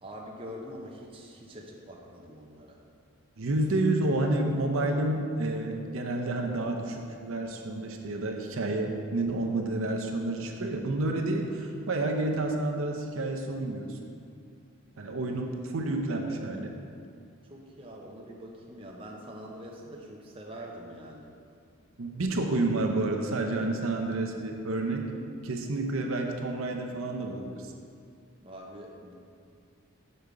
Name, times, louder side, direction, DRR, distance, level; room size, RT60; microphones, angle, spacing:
voice 1, 0.0-2.8 15.0-15.5 17.4-21.3 28.4-29.2, equal, 25° right, -1 dB, 0.6 m, -44 dB
voice 2, 3.4-14.1 15.0-16.7 22.0-25.1 25.4-27.7, right 2 dB, 70° right, 2 dB, 0.6 m, -29 dB
6.6 x 5.4 x 4.7 m, 2.4 s
head